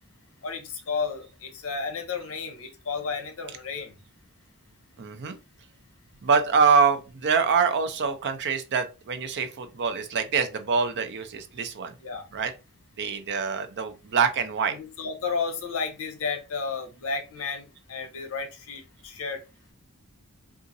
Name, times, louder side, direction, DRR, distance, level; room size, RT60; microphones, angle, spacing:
voice 1, 0.4-3.9 12.0-12.2 14.7-19.4, left 5 dB, 65° left, 0.7 m, -32 dB
voice 2, 5.0-5.4 6.2-11.9 12.3-12.5 13.0-14.7, right 5 dB, 50° right, 0.5 m, -25 dB
3.8 x 2.4 x 2.6 m
head